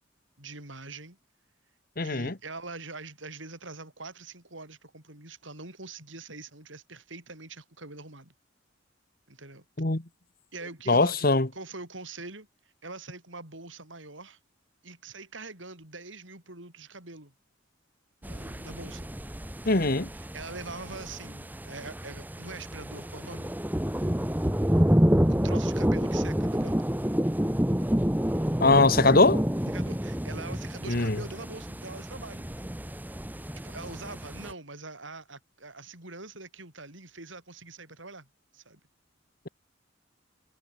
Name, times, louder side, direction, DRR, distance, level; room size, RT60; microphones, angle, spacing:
voice 1, 0.4-1.2 2.0-8.3 9.3-9.6 10.5-12.5 12.8-14.4 14.8-17.3 18.2-19.1 19.8-23.6 25.3-26.9 29.7-32.8 33.6-38.3 38.5-38.8, right 3 dB, 75° right, 7.6 m, -43 dB
voice 2, 2.0-2.3 9.8-10.0 10.9-11.5 19.7-20.1 28.6-29.4 30.9-31.2, left 3 dB, 50° left, 1.7 m, -21 dB
sound 1, 18.2-34.5, equal, 10° right, 1.3 m, -29 dB
head